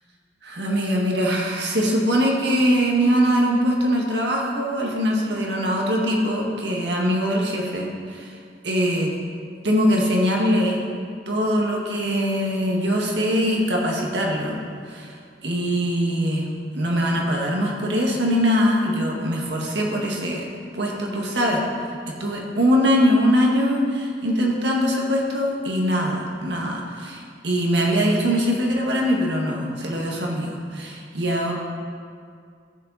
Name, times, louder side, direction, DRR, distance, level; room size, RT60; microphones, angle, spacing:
voice 1, 0.4-8.4 8.6-9.1 9.6-10.8 11.3-14.6 14.9-15.1 15.4-16.5 16.7-21.6 22.1-31.5, equal, 75° right, -1 dB, 1.7 m, -22 dB
14.0 x 7.5 x 4.1 m, 2.2 s
head